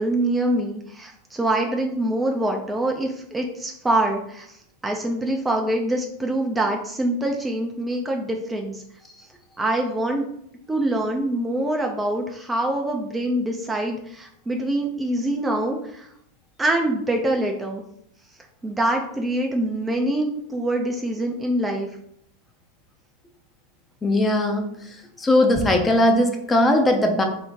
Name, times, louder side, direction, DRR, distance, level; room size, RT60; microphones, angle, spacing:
voice 1, 0.0-8.8 9.6-10.3 10.7-16.1 16.6-17.8 18.6-21.9, right 1 dB, 15° right, 2 dB, 0.6 m, -25 dB
voice 2, 24.0-24.7 25.2-27.2, left 1 dB, 20° left, 4 dB, 0.8 m, -19 dB
3.2 x 2.8 x 4.6 m, 0.73 s
hypercardioid pair, 90°, 0 cm